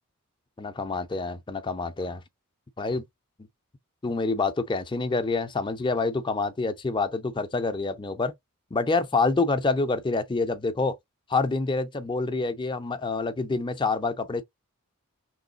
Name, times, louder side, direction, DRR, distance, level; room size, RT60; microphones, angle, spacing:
voice 1, 0.6-2.2 2.8-3.0 4.0-8.3 8.7-11.0 11.3-14.4, left 3 dB, 20° left, 0.4 m, -27 dB
3.2 x 2.7 x 3.8 m
head